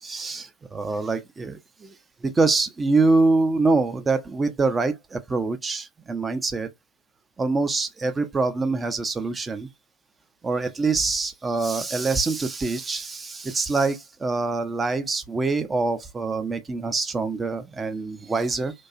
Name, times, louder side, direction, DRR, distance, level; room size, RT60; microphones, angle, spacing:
voice 1, 0.0-1.9 2.2-6.7 7.4-9.7 10.4-18.7, right 3 dB, 15° right, 0.4 m, -25 dB
2.7 x 2.2 x 2.4 m
figure-of-eight pair, 90°, 0 cm